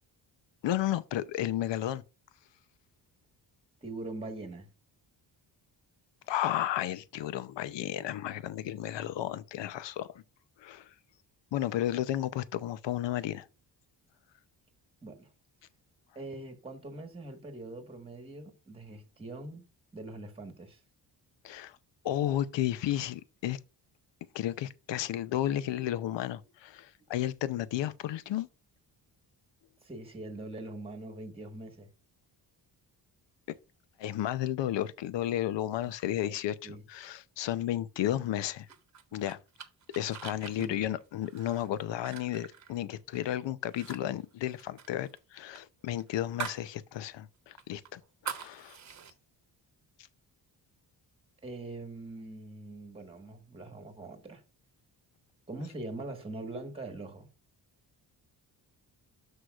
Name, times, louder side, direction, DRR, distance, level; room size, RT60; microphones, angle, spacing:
voice 1, 0.6-2.0 6.3-10.2 10.6-10.9 11.5-13.5 21.4-21.8 22.0-23.6 24.3-28.5 34.0-38.7 39.1-39.4 39.9-48.8, left 12 dB, 85° left, 0.7 m, -33 dB
voice 2, 3.8-4.7 15.0-15.3 16.1-19.6 19.9-20.8 29.8-31.9 36.2-36.3 36.6-36.8 38.1-38.2 40.5-40.8 51.4-54.4 55.5-57.3, right 2 dB, 15° right, 1.3 m, -42 dB
sound 1, 38.7-43.3 43.6-44.0 44.2-46.7 47.0-47.1 47.6-49.1, right 8 dB, 40° right, 1.0 m, -43 dB
12.5 x 4.7 x 2.3 m
wide cardioid pair, 155°, 43 cm